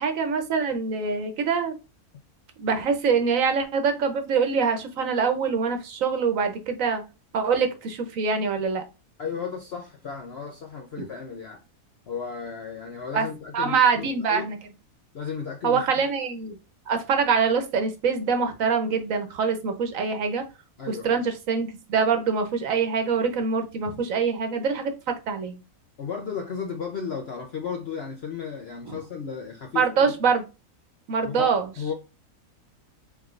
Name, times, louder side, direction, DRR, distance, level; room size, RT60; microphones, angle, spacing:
voice 1, 0.0-1.7 2.6-7.0 7.3-8.8 11.0-11.1 13.1-13.3 13.5-14.6 15.6-16.6 16.9-20.4 20.9-25.6 28.9-29.0 29.7-30.5 31.1-31.7, right 5 dB, 65° right, 1.2 m, -24 dB
voice 2, 9.2-11.6 12.1-14.5 15.1-16.1 20.8-21.2 23.9-24.0 26.0-30.2 31.2-31.9, left 6 dB, 55° left, 0.8 m, -34 dB
4.6 x 3.7 x 2.5 m
omnidirectional pair, 1.6 m